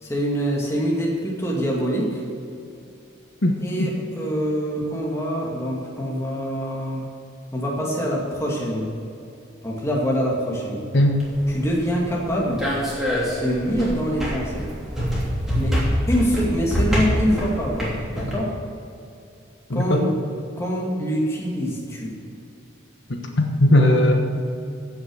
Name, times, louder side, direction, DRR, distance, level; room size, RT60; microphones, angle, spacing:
voice 1, 0.0-2.2 3.6-7.0 7.5-8.9 9.6-10.9 11.5-12.7 13.4-14.7 15.5-15.8 16.1-18.5 19.7-20.1 20.6-22.1, equal, 15° left, -3 dB, 2.2 m, -25 dB
voice 2, 3.4-3.9 10.9-11.2 19.7-20.0 23.1-24.1, left 1 dB, 70° left, 2 dB, 1.3 m, -18 dB
sound 1, 11.2-18.3, equal, ahead, 3.0 m, -26 dB
15.5 x 6.0 x 6.4 m, 2.6 s
head